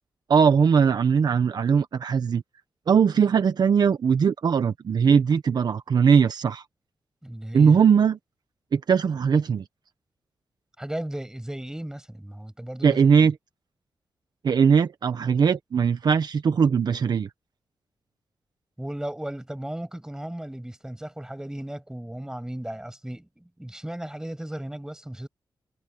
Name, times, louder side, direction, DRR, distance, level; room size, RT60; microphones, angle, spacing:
voice 1, 0.3-2.4 2.9-6.6 7.5-8.2 8.7-9.6 12.8-13.3 14.4-17.3, right 6 dB, 65° right, 1.2 m, -20 dB
voice 2, 7.2-7.8 10.8-13.3 18.8-25.3, right 1 dB, 10° right, 7.1 m, -35 dB
cardioid pair, 85°, 8 cm